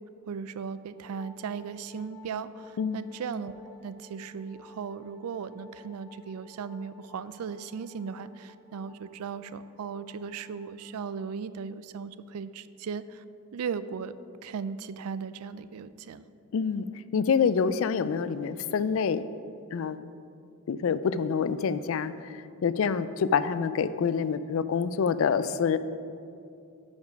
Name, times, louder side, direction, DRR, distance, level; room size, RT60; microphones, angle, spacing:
voice 1, 0.3-13.2 13.5-14.1 14.4-16.3, right 6 dB, 85° right, 15 dB, 0.4 m, -37 dB
Wind instrument woodwind instrument, 1.0-10.9, left 2 dB, 5° left, 0.8 m, -54 dB
voice 2, 16.5-16.9 17.1-19.3 19.7-20.0 20.7-22.1 22.6-25.8, left 6 dB, 65° left, 14 dB, 0.3 m, -26 dB
9.7 x 5.3 x 5.2 m, 2.5 s
head